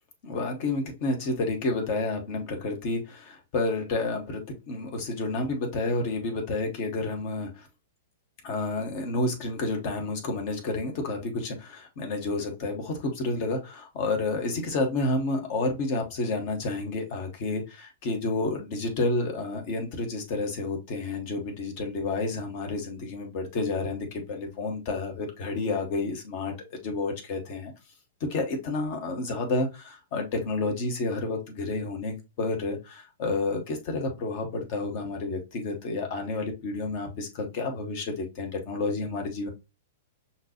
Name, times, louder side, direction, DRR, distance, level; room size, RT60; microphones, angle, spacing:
voice 1, 0.2-7.7 8.4-27.7 28.3-39.5, left 3 dB, 40° left, 1.2 m, -30 dB
5.7 x 2.8 x 2.8 m
figure-of-eight pair, 105°, 0 cm